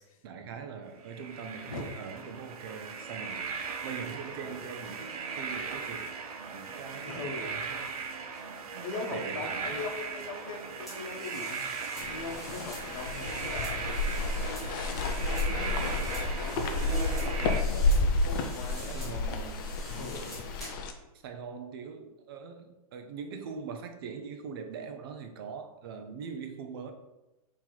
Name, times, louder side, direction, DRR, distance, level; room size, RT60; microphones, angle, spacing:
voice 1, 0.2-6.1 6.5-7.9 8.7-10.0 18.8-20.0 21.2-26.9, right 6 dB, 40° right, 6 dB, 0.4 m, -42 dB
sound 1, 1.0-17.6, right 5 dB, 70° right, 0.7 m, -38 dB
voice 2, 7.1-7.5 8.8-11.6 12.1-14.8 15.3-19.0 19.9-20.5, left 3 dB, 60° left, 2 dB, 0.9 m, -41 dB
sound 2, 10.9-20.9, equal, ahead, 1.2 m, -46 dB
sound 3, 12.0-20.9, left 2 dB, 35° left, 0.4 m, -30 dB
3.8 x 2.9 x 4.5 m, 0.98 s
hypercardioid pair, 165°, 19 cm